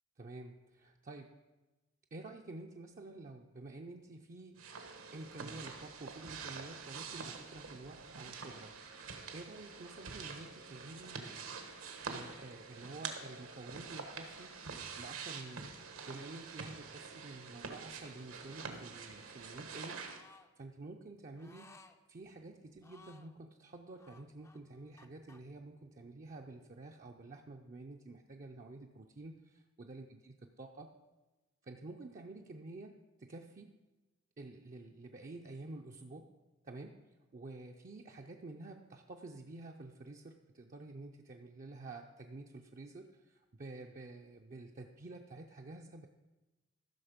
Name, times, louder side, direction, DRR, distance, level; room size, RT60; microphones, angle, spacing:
voice 1, 0.2-1.3 2.1-4.8 5.1-8.8 9.3-11.3 12.1-14.6 15.0-15.7 16.1-20.0 20.6-21.8 22.1-30.9 31.6-33.8 34.4-36.3 36.6-37.0 37.3-46.1, right 2 dB, 40° right, 2 dB, 0.5 m, -50 dB
sound 1, 4.6-20.2, right 5 dB, 75° right, 1.2 m, -46 dB
sound 2, 20.1-20.5 21.4-22.0 22.8-23.3 24.0-25.4, left 3 dB, 15° left, 0.4 m, -59 dB
14.5 x 6.4 x 5.1 m, 1.1 s
head